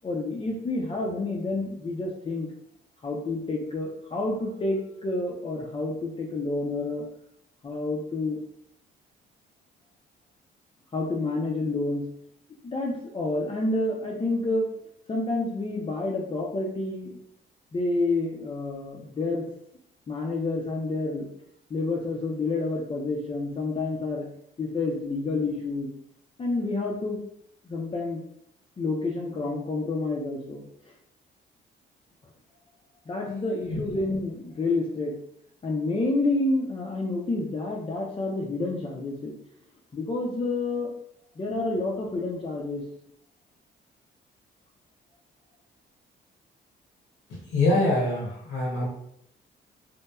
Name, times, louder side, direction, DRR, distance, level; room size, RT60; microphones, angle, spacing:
voice 1, 0.0-2.5 3.0-7.1 7.6-8.4 10.9-12.1 12.6-14.7 15.1-17.2 17.7-19.5 20.1-21.3 21.7-24.3 24.6-25.9 26.4-27.2 27.6-28.2 28.8-30.6 33.1-35.1 35.6-39.4 39.9-40.9 41.4-42.8, left 2 dB, 25° left, -2 dB, 0.4 m, -29 dB
voice 2, 47.3-48.9, left 2 dB, 85° left, -4 dB, 0.9 m, -25 dB
2.9 x 2.1 x 2.2 m, 0.73 s
cardioid pair, 90°, 20 cm